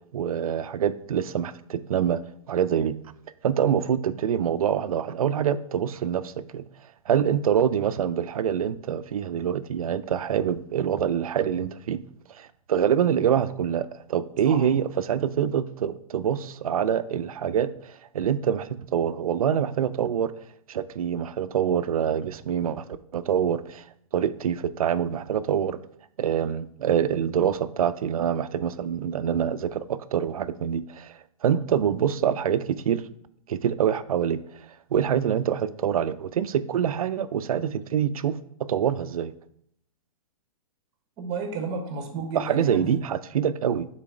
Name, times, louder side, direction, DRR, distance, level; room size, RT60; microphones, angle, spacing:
voice 1, 0.1-2.2 2.5-3.0 3.4-6.6 7.1-12.0 12.3-20.3 20.7-22.8 23.1-23.8 24.1-25.8 26.2-31.1 31.4-33.0 33.5-34.4 34.9-38.4 38.7-39.3 42.4-43.9, right 9 dB, 85° right, 14 dB, 0.5 m, -25 dB
voice 2, 41.2-43.0, right 4 dB, 25° right, 5 dB, 1.0 m, -32 dB
5.8 x 4.1 x 4.9 m, 0.70 s
hypercardioid pair, 160°, 18 cm